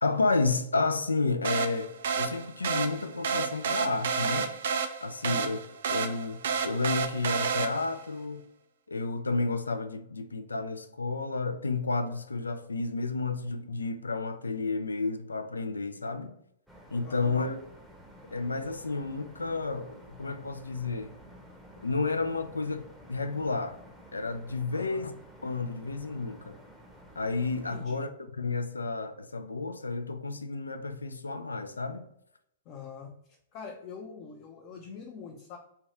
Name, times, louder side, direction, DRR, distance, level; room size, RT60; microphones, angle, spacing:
voice 1, 0.0-1.9 2.2-4.5 5.0-5.6 5.9-8.4 8.9-16.3 16.9-17.7 18.3-21.1 21.8-23.8 24.1-25.1 25.4-26.6 27.2-32.1, left 3 dB, 90° left, 0.4 m, -31 dB
sound 1, 1.4-8.0, right 6 dB, 65° right, 0.4 m, -31 dB
voice 2, 5.2-5.6 17.0-17.5 24.7-25.1 27.7-28.2 32.7-33.2 33.5-35.6, left 6 dB, 40° left, 0.6 m, -44 dB
sound 2, 16.7-27.8, equal, 5° right, 0.7 m, -52 dB
3.3 x 2.3 x 4.1 m
hypercardioid pair, 115°, 0 cm